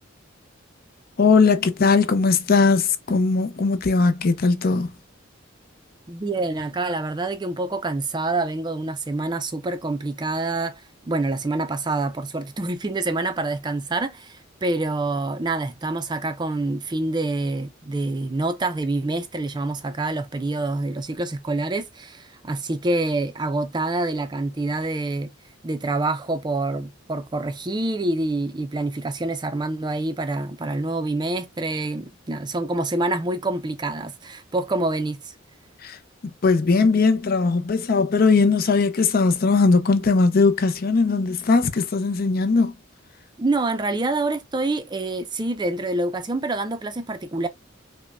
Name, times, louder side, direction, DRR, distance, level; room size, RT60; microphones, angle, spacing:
voice 1, 1.2-4.9 35.8-42.7, left 4 dB, 50° left, 0.5 m, -19 dB
voice 2, 6.1-25.3 25.6-35.3 43.4-47.5, right 2 dB, 20° right, 0.4 m, -26 dB
5.1 x 2.1 x 2.3 m
head